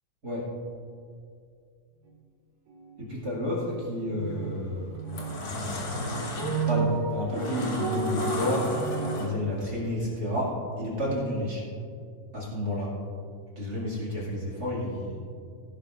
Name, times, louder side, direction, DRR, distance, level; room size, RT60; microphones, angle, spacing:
sound 1, 2.7-2.9 3.1-4.5 4.9-9.4, right 4 dB, 65° right, 3.2 m, -32 dB
voice 1, 3.0-5.0 5.4-5.9 6.4-8.8 9.2-11.6 12.3-13.0 13.6-15.2, left 1 dB, 30° right, -4 dB, 2.2 m, -31 dB
sound 2, 4.2-4.4 4.9-9.6, left 2 dB, 55° left, 1.9 m, -35 dB
17.5 x 11.0 x 2.5 m, 2.3 s
omnidirectional pair, 4.2 m